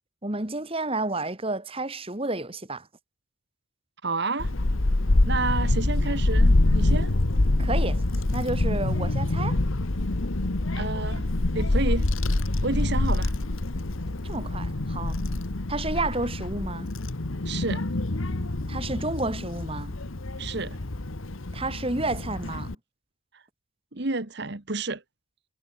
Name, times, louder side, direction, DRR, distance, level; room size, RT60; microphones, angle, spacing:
voice 1, 0.2-2.9 7.6-8.0 8.3-9.6 14.2-15.2 15.7-16.9 18.7-19.9 21.5-22.7, right 2 dB, 25° right, 2.0 m, -30 dB
voice 2, 4.0-4.5 5.2-7.1 10.8-11.2 11.5-12.1 12.6-13.3 17.4-17.8 20.4-20.8 23.3-23.4 23.9-25.0, right 3 dB, 50° right, 1.5 m, -30 dB
Child speech kid speaking / Wind, 4.4-22.8, left 2 dB, 70° left, 1.4 m, -26 dB
head